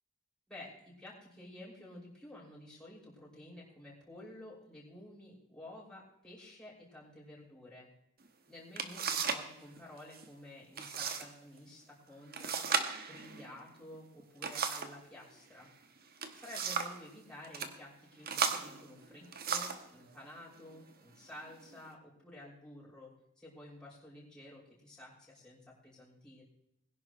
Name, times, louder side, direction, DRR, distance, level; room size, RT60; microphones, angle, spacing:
voice 1, 0.5-7.9 8.5-12.6 13.1-15.7 16.3-26.4, left 1 dB, 5° left, -8 dB, 5.8 m, -52 dB
sound 1, 8.3-8.4 8.8-9.5 9.8-10.3 10.8-11.3 11.6-11.7 12.3-15.0 16.0-17.0 17.4-17.7 18.2-19.9 20.7-20.8 21.4-21.9, right 6 dB, 45° right, 1.2 m, -36 dB
21.5 x 11.0 x 3.1 m, 0.78 s
head